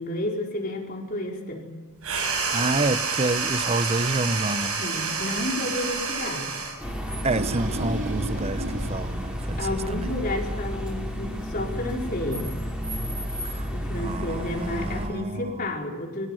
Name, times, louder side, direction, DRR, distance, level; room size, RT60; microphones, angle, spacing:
voice 1, 0.0-1.7 4.8-6.5 9.6-12.5 13.7-16.3, left 1 dB, 40° left, 0 dB, 4.8 m, -31 dB
sound 1, 2.0-6.8, right 4 dB, 75° right, 7.4 m, -28 dB
voice 2, 2.5-4.8 7.2-10.1 13.4-15.6, right 2 dB, 30° right, 13 dB, 0.9 m, -28 dB
sound 2, 6.8-15.1, equal, 5° right, 5.3 m, -31 dB
sound 3, 7.1-10.2, right 1 dB, 60° right, 2.3 m, -34 dB
26.0 x 18.0 x 9.2 m, 1.3 s
head